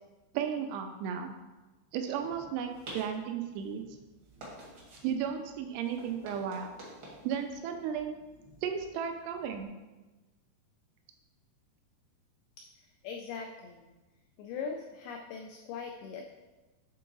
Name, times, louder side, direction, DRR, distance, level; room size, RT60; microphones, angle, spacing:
voice 1, 0.3-1.3 1.9-3.9 5.0-6.7 7.2-8.2 8.6-9.7, right 8 dB, 80° right, 5 dB, 2.4 m, -34 dB
sound 1, 2.1-9.7, right 1 dB, 65° right, 1.3 m, -51 dB
voice 2, 12.8-13.9 14.4-16.4, left 5 dB, 85° left, 2 dB, 2.2 m, -41 dB
8.4 x 3.8 x 3.9 m, 1.2 s
omnidirectional pair, 5.0 m